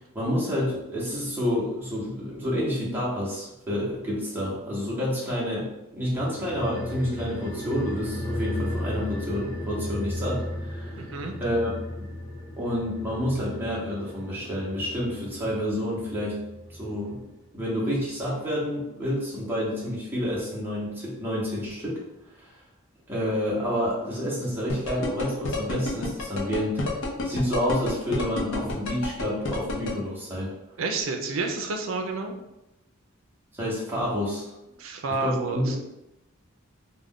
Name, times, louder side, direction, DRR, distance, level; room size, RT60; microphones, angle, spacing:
voice 1, 0.1-11.0 11.4-11.7 12.6-16.4 16.7-17.2 17.5-22.0 22.4-22.6 23.1-26.9 27.2-30.5 33.6-34.5 35.2-35.7, equal, 10° right, -7 dB, 0.8 m, -29 dB
sound 1, 6.2-17.0 17.3-17.4, left 1 dB, 15° left, 0.4 m, -35 dB
voice 2, 11.0-11.3 30.8-32.3 34.8-35.8, right 3 dB, 75° right, 4 dB, 0.4 m, -30 dB
sound 2, 24.7-29.9, left 2 dB, 60° left, 0.6 m, -29 dB
2.4 x 2.2 x 3.5 m, 0.93 s
head